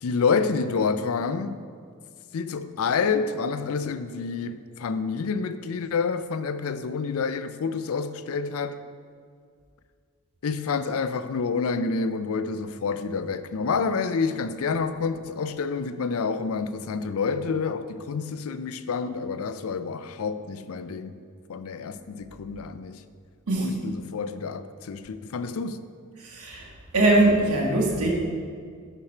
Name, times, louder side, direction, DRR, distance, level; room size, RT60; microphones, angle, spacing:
voice 1, 0.0-1.6 2.3-8.8 10.4-21.1 21.5-23.0 23.6-25.8, left 5 dB, 70° left, 0.4 m, -28 dB
voice 2, 26.2-26.6 26.9-28.1, right 2 dB, 80° right, 1.7 m, -21 dB
11.0 x 4.6 x 4.9 m
head